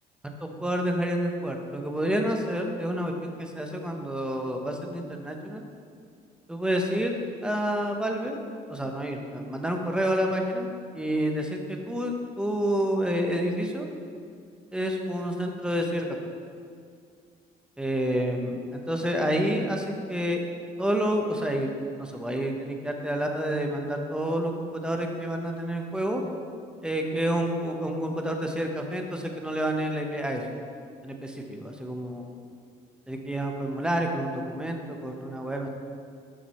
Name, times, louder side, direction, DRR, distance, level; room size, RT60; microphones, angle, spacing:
voice 1, 0.6-5.6 6.5-7.1 7.4-8.4 8.7-10.7 10.9-13.9 14.7-16.1 17.8-20.4 20.8-21.7 22.0-26.2 26.8-30.4 31.0-32.3 33.1-35.7, equal, 5° right, 2 dB, 0.7 m, -29 dB
6.2 x 5.9 x 4.1 m, 2.3 s
cardioid pair, 110°, 17 cm